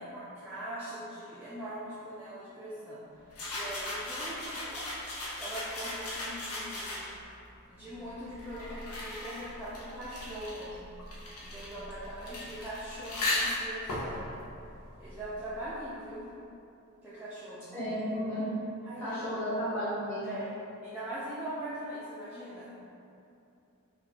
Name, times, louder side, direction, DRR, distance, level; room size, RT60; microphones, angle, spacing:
voice 1, 0.0-3.0 3.5-4.7 5.4-7.1 7.7-10.8 11.4-14.3 15.0-16.2 17.0-17.8 18.8-19.2 20.2-20.5 20.8-22.7, right 1 dB, 5° right, -11 dB, 0.4 m, -41 dB
sound 1, 3.3-7.3 8.1-15.5, left 1 dB, 85° left, 0.6 m, -37 dB
voice 2, 17.7-18.5 19.0-20.2, equal, 10° left, -14 dB, 1.5 m, -33 dB
4.1 x 2.3 x 2.8 m, 2.7 s
head